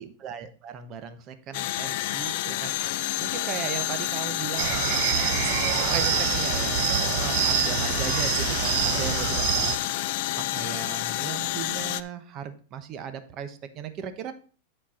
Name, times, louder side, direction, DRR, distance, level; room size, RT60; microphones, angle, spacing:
voice 1, 0.0-9.8 10.4-14.3, right 8 dB, 35° right, 9 dB, 1.1 m, -37 dB
sound 1, 1.5-12.0, left 15 dB, 60° left, 0.5 m, -29 dB
sound 2, 4.6-9.8, right 11 dB, 50° right, 0.8 m, -26 dB
10.0 x 4.5 x 4.3 m, 0.39 s
supercardioid pair, 135°, 0 cm